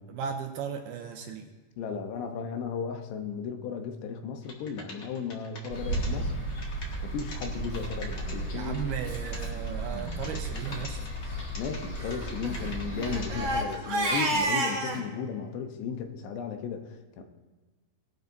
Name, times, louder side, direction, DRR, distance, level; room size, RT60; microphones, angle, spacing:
voice 1, 0.1-1.5 8.5-11.0, right 7 dB, 75° right, 4 dB, 2.6 m, -36 dB
voice 2, 1.8-6.3 7.0-8.9 11.6-17.2, left 6 dB, 75° left, 5 dB, 3.0 m, -35 dB
sound 1, 4.4-6.1 6.5-8.3 8.6-13.3 13.5-14.2, left 2 dB, 50° left, 1.3 m, -44 dB
sound 2, 5.7-13.6, right 1 dB, 35° left, 4.8 m, -34 dB
Crying sobbing, 8.1-8.4 9.0-9.1 9.4-9.5 9.9-10.1 10.5-10.8 11.9-15.0, right 2 dB, 40° right, 2.1 m, -31 dB
19.0 x 12.0 x 2.7 m, 1.3 s
omnidirectional pair, 5.1 m